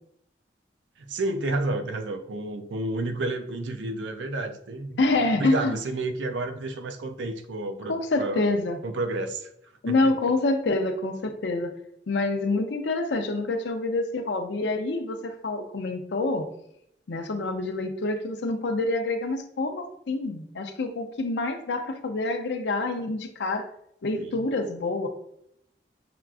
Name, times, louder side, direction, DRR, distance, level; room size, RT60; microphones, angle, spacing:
voice 1, 1.0-5.0 5.4-8.4 8.8-9.5 9.9-10.1 24.2-24.4, right 2 dB, 85° right, 7 dB, 0.5 m, -30 dB
voice 2, 5.0-5.7 7.9-8.8 9.8-11.7 12.1-16.5 17.1-23.7 24.0-25.1, left 2 dB, 75° left, 6 dB, 0.5 m, -27 dB
5.8 x 2.3 x 2.4 m, 0.73 s
head